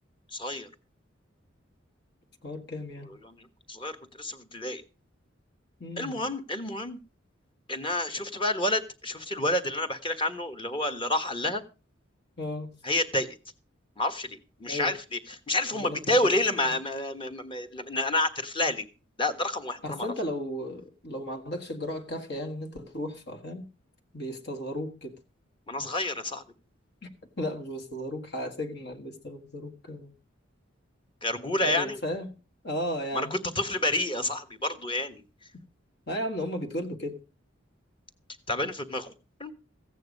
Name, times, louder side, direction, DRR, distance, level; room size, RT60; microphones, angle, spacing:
voice 1, 0.3-0.7 3.1-4.8 6.0-7.0 7.7-11.6 12.8-13.4 14.0-15.2 15.5-18.9 19.2-20.1 25.7-26.4 31.2-32.0 33.1-35.2 38.5-39.1 39.4-39.5, left 1 dB, 25° left, 1.4 m, -29 dB
voice 2, 2.4-3.1 5.8-6.2 12.4-12.7 14.7-14.9 15.7-16.4 19.8-23.6 24.1-25.2 27.4-30.1 31.6-32.3 32.6-33.4 36.1-37.2, left 1 dB, 60° left, 1.8 m, -35 dB
15.0 x 9.2 x 5.2 m
head